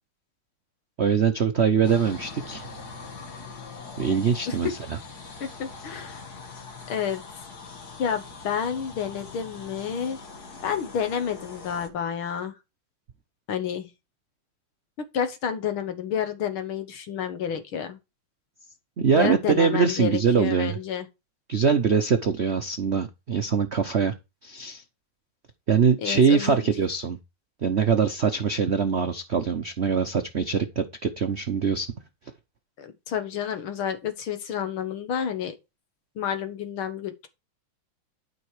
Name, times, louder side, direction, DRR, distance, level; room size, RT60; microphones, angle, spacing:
voice 1, 1.0-2.7 4.0-4.7 19.0-20.8 21.5-24.1 24.4-24.8 25.7-27.2 27.6-31.9, right 6 dB, 70° right, 0.6 m, -23 dB
sound 1, 1.8-11.9, left 4 dB, 50° left, 2.2 m, -42 dB
voice 2, 5.4-6.2 6.9-7.2 8.0-10.2 10.6-12.5 13.5-13.9 15.0-18.0 19.2-21.1 26.0-26.7 32.8-35.6 36.2-37.3, left 8 dB, 75° left, 2.2 m, -30 dB
12.5 x 5.3 x 4.9 m
omnidirectional pair, 2.3 m